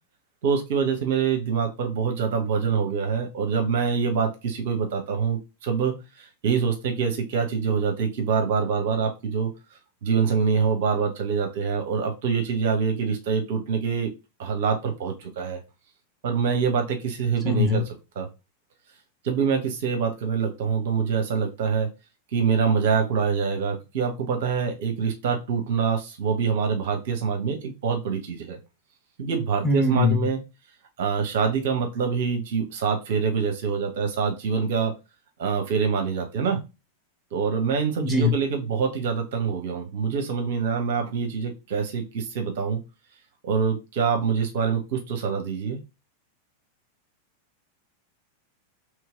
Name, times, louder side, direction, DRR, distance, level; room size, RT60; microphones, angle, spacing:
voice 1, 0.4-9.5 10.0-14.1 14.4-15.6 16.2-17.8 18.1-18.3 19.2-21.9 22.3-28.6 29.2-30.4 31.0-34.9 35.4-36.6 37.3-42.8 43.4-45.8, right 6 dB, 55° right, 4 dB, 0.9 m, -25 dB
voice 2, 17.4-17.8 29.6-30.3 38.0-38.3, left 3 dB, 5° right, 0 dB, 1.1 m, -21 dB
3.1 x 3.1 x 3.7 m, 0.26 s
figure-of-eight pair, 90°, 0 cm